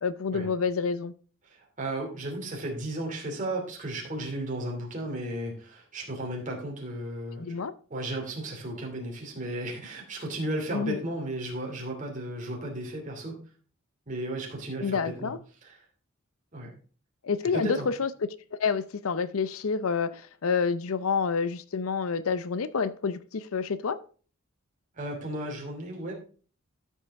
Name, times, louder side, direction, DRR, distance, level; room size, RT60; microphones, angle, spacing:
voice 1, 0.0-1.1 7.4-7.7 10.7-11.0 14.8-15.4 17.2-18.1 18.5-24.0, left 5 dB, 75° left, 0.6 m, -28 dB
voice 2, 1.5-7.6 7.9-13.4 14.1-15.3 15.6-15.8 16.5-16.7 17.5-17.9 24.9-26.1, right 1 dB, 35° right, 2.6 m, -34 dB
13.0 x 5.5 x 3.6 m
head